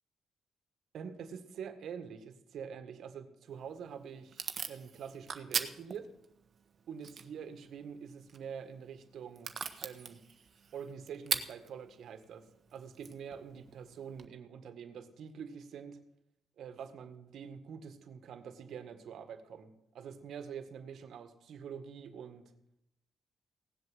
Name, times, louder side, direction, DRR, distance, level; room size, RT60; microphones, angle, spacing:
voice 1, 0.9-6.1 6.9-9.6 9.8-10.2 10.7-16.0 16.6-22.5, right 7 dB, 70° right, 10 dB, 1.7 m, -46 dB
Packing tape duct tape / Tearing, 3.5-14.3, right 6 dB, 50° right, 1.3 m, -43 dB
17.5 x 7.9 x 7.9 m, 0.80 s
cardioid pair, 90°, 0 cm